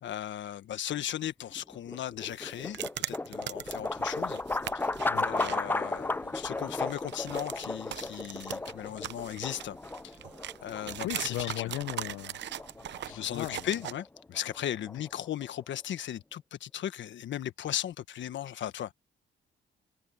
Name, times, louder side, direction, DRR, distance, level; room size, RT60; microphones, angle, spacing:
voice 1, 0.0-4.4 5.2-9.8 10.0-10.2 10.6-11.7 13.1-18.9, left 11 dB, 70° left, 1.4 m, -37 dB
sound 1, 1.5-15.6, left 2 dB, 10° left, 0.4 m, -35 dB
sound 2, 2.2-5.6 5.9-6.0 6.4-13.9, right 11 dB, 65° right, 0.8 m, -40 dB
sound 3, 3.6-13.7, right 1 dB, 10° right, 2.9 m, -58 dB
voice 2, 11.0-12.4 13.0-13.6, left 16 dB, 90° left, 0.8 m, -36 dB
cardioid pair, 90°, 20 cm